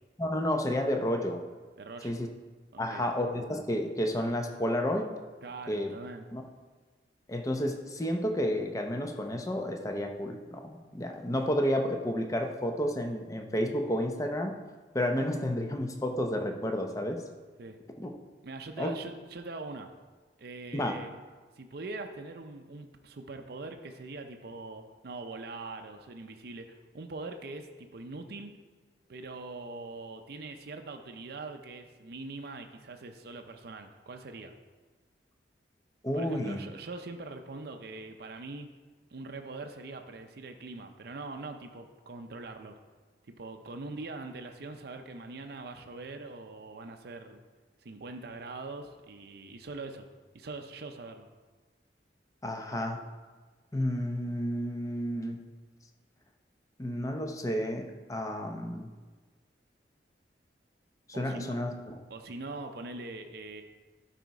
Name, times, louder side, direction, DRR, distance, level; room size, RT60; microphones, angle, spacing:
voice 1, 0.2-1.4 2.0-2.3 2.8-5.1 5.7-5.9 6.3-6.4 7.3-14.6 14.9-17.2 18.0-18.1 18.8-18.9 20.7-21.0 36.0-36.6 52.4-53.0 53.7-55.4 56.8-58.9 61.1-62.0, equal, 20° left, 4 dB, 0.7 m, -31 dB
voice 2, 1.8-2.1 2.7-3.0 5.4-6.3 17.6-17.8 18.4-19.9 20.4-21.1 21.6-28.5 29.1-34.5 36.1-38.7 39.1-42.8 43.3-47.4 47.8-50.1 50.3-51.3 61.1-61.6 62.1-63.6, right 3 dB, 60° right, 5 dB, 0.6 m, -42 dB
12.0 x 4.2 x 4.7 m, 1.3 s
head